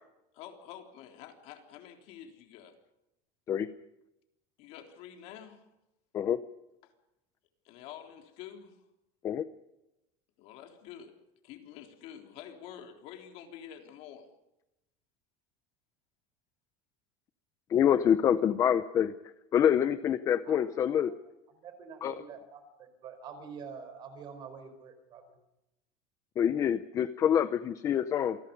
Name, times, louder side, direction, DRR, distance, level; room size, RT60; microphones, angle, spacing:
voice 1, 0.3-2.7 4.6-5.6 7.6-8.8 10.4-11.2 11.4-14.3, left 9 dB, 50° left, 4 dB, 3.6 m, -48 dB
voice 2, 17.7-19.1 19.5-21.1 22.0-22.1 26.4-28.4, left 9 dB, 25° left, 13 dB, 0.7 m, -26 dB
voice 3, 21.6-25.4, right 6 dB, 30° right, 9 dB, 4.6 m, -46 dB
28.0 x 20.0 x 5.4 m, 0.91 s
cardioid pair, 180°, 14 cm